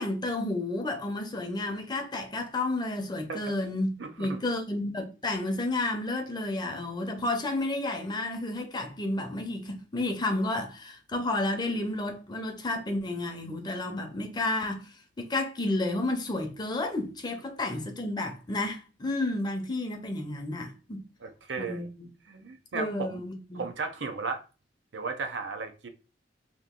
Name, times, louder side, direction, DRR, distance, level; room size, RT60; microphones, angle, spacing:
voice 1, 0.0-3.9 4.2-14.9 15.2-21.1 21.6-21.9 22.7-23.6, left 2 dB, 25° left, 0.6 m, -31 dB
voice 2, 4.0-4.4 21.2-21.9 22.3-23.2 23.5-24.4 24.9-25.9, right 4 dB, 80° right, 0.6 m, -35 dB
2.9 x 2.4 x 3.7 m
head